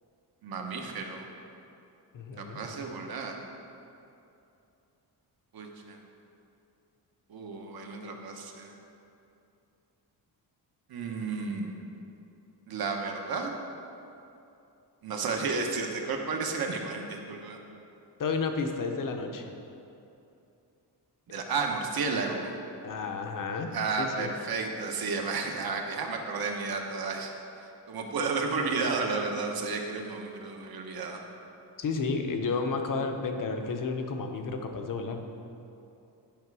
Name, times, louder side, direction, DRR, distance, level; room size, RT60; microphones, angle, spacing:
voice 1, 0.4-1.3 2.4-3.3 5.5-6.0 7.3-8.8 10.9-11.8 12.7-13.5 15.0-17.6 21.3-22.5 23.7-27.3 27.6-31.2, right 4 dB, 60° right, 2 dB, 1.0 m, -32 dB
voice 2, 2.1-2.6 18.2-19.5 22.8-23.7 24.0-24.3 31.8-35.3, left 4 dB, 50° left, 5 dB, 0.8 m, -31 dB
10.5 x 5.7 x 4.7 m, 2.7 s
wide cardioid pair, 165°, 41 cm